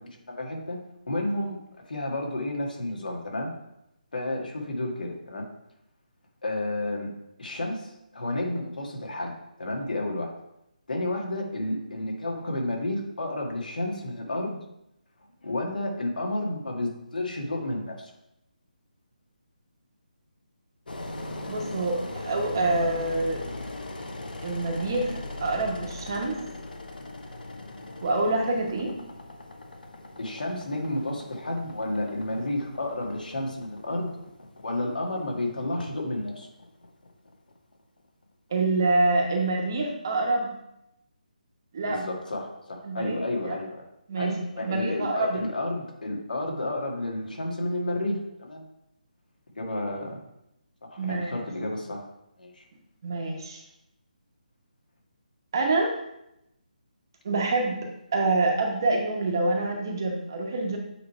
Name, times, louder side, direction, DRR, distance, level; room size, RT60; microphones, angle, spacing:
voice 1, 0.4-0.8 1.1-1.6 1.9-3.5 4.1-5.4 6.4-7.1 7.4-9.3 9.6-10.3 10.9-14.6 15.4-18.1 30.2-34.1 34.6-36.5 41.9-43.8 44.2-48.6 49.5-50.2 50.9-52.1 52.4-52.6, left 1 dB, 70° left, 0 dB, 1.8 m, -31 dB
Engine, 20.9-37.8, left 2 dB, 90° left, 1.0 m, -40 dB
voice 2, 21.5-23.4 24.4-26.4 28.0-28.9 38.5-40.5 41.7-42.0 42.8-43.6 44.1-44.3 44.6-45.4 51.0-51.3 53.0-53.6 55.5-55.9 57.2-57.8 58.1-60.8, right 2 dB, 25° right, 1 dB, 0.9 m, -26 dB
7.9 x 3.2 x 4.3 m, 0.83 s
hypercardioid pair, 180°, 5 cm